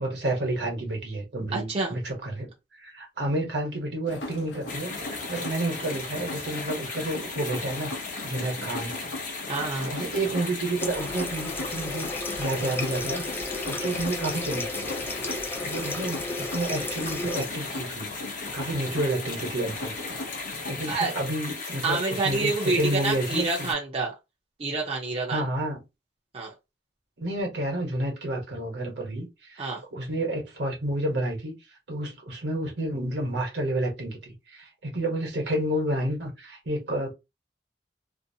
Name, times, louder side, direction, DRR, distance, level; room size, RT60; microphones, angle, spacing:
voice 1, 0.0-2.5 2.8-7.9 8.2-8.9 9.9-13.2 13.6-14.8 15.6-18.1 18.5-19.9 20.7-23.7 25.3-25.8 27.2-31.5 31.9-37.1, right 1 dB, 70° right, 1.1 m, -30 dB
voice 2, 1.5-2.0 9.5-9.9 20.9-21.1 21.8-24.1 24.6-25.4 26.3-26.5 29.6-29.8, right 3 dB, 35° right, 0.6 m, -28 dB
sound 1, 4.1-20.9, left 2 dB, 80° left, 0.6 m, -39 dB
sound 2, 4.7-23.7, left 3 dB, 50° left, 0.8 m, -37 dB
Water tap faucet, 10.8-17.5, left 2 dB, 10° left, 0.4 m, -34 dB
2.6 x 2.1 x 2.7 m
head